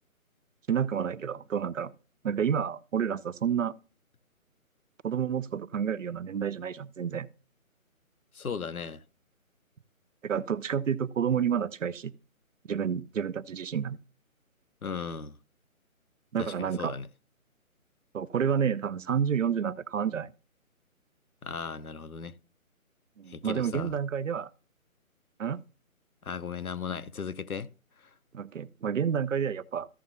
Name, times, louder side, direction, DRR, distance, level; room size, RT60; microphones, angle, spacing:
voice 1, 0.7-1.9 2.2-3.7 5.0-7.3 10.2-12.1 12.7-14.0 16.3-16.9 18.1-20.3 23.2-24.5 25.4-25.6 28.3-29.9, right 8 dB, 65° right, 0.6 m, -29 dB
voice 2, 8.3-9.0 14.8-15.4 16.4-17.1 21.4-22.3 23.3-23.9 26.2-27.7, left 6 dB, 85° left, 0.8 m, -36 dB
14.0 x 7.0 x 2.6 m
figure-of-eight pair, 145°, 42 cm